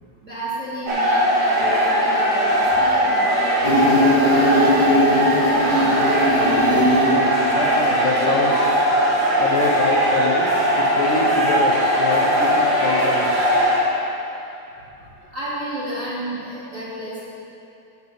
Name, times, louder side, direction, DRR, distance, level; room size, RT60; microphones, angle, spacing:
voice 1, 0.2-7.2 15.3-17.2, right 1 dB, 25° right, -10 dB, 2.3 m, -32 dB
sound 1, 0.9-13.8, right 1 dB, 45° right, 1.5 m, -19 dB
Insect, 3.6-8.6, left 1 dB, 45° left, 1.5 m, -21 dB
voice 2, 7.5-13.3 14.5-14.6 15.3-15.4, left 4 dB, 80° left, 1 dB, 2.4 m, -26 dB
15.0 x 7.8 x 3.4 m, 2.7 s
omnidirectional pair, 3.6 m